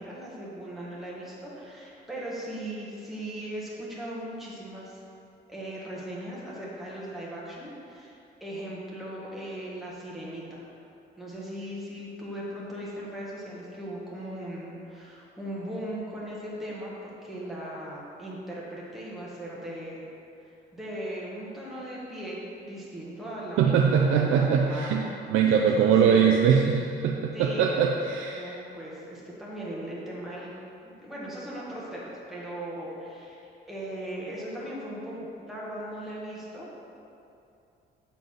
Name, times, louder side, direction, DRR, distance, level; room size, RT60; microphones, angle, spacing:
voice 1, 0.0-5.0 5.5-10.6 11.2-20.0 20.4-25.1 25.5-26.2 27.3-27.7 28.3-30.5 30.8-36.7, right 1 dB, ahead, -7 dB, 1.3 m, -38 dB
voice 2, 23.6-28.6, right 7 dB, 90° right, 1 dB, 0.5 m, -22 dB
7.1 x 4.0 x 6.2 m, 2.6 s
cardioid pair, 175°, 20 cm